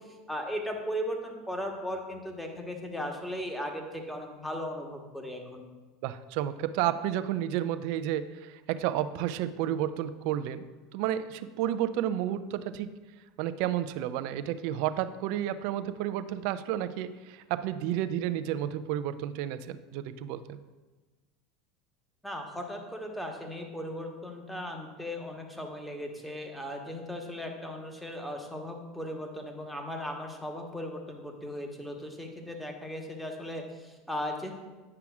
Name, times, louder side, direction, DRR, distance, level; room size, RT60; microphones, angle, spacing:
voice 1, 0.0-5.7 22.2-34.5, equal, ahead, 2 dB, 1.1 m, -37 dB
voice 2, 6.0-10.6 10.9-12.9 13.4-20.6, right 11 dB, 65° right, 12 dB, 0.3 m, -31 dB
9.6 x 5.7 x 2.4 m, 1.2 s
hypercardioid pair, 90°, 0 cm